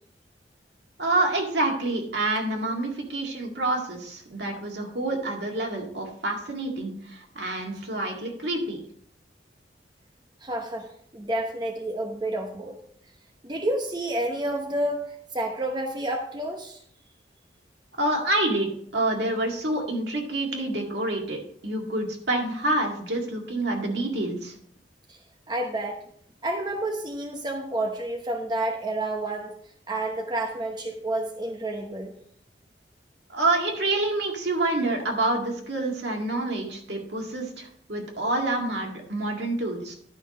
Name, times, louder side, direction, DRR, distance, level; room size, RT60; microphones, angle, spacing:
voice 1, 1.0-8.8 18.0-24.5 33.3-40.0, right 2 dB, 65° right, 1 dB, 2.0 m, -27 dB
voice 2, 10.4-12.8 13.4-16.8 25.1-25.2 25.5-26.0 26.4-29.6 29.9-32.1, right 1 dB, 25° right, 2 dB, 0.9 m, -30 dB
11.5 x 5.9 x 4.2 m, 0.64 s
head